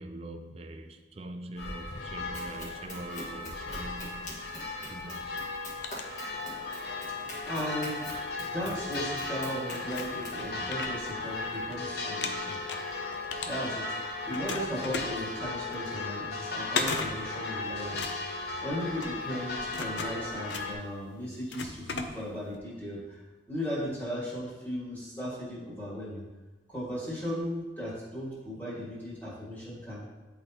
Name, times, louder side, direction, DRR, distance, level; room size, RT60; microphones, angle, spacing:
voice 1, 0.0-4.3 4.9-5.5, right 1 dB, 35° right, 5 dB, 0.5 m, -43 dB
sound 1, 1.6-20.7, left 3 dB, 60° left, 0.9 m, -36 dB
Run, 2.3-10.4, left 1 dB, 45° left, 1.6 m, -45 dB
sound 2, 5.4-6.8 7.2-8.9 9.5-9.6 9.9-11.8 12.0-14.0 14.3-22.6, left 4 dB, 85° left, 0.6 m, -38 dB
voice 2, 7.5-8.1 8.5-12.6 13.4-23.2 23.5-26.2 26.7-30.1, equal, 10° left, -8 dB, 1.8 m, -36 dB
10.0 x 4.0 x 2.9 m, 1.2 s
head